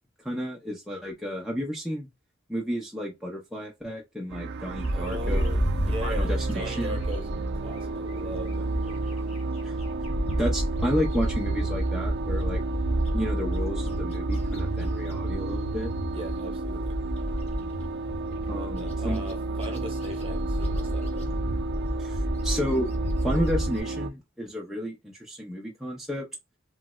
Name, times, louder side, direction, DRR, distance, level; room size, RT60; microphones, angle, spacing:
voice 1, 0.2-2.1 2.5-5.5 6.0-7.0 9.6-9.7 10.4-12.6 13.1-15.9 18.5-19.2 22.0-22.9 23.2-26.3, equal, ahead, 0.6 m, -32 dB
sound 1, 4.3-24.1, right 3 dB, 55° right, 0.4 m, -32 dB
Bird, 4.7-9.2 9.6-23.8, right 1 dB, 30° left, 1.0 m, -30 dB
voice 2, 4.9-7.3 7.6-9.1 16.1-17.0 18.4-21.3, equal, 25° right, 1.0 m, -39 dB
3.2 x 3.0 x 2.3 m
head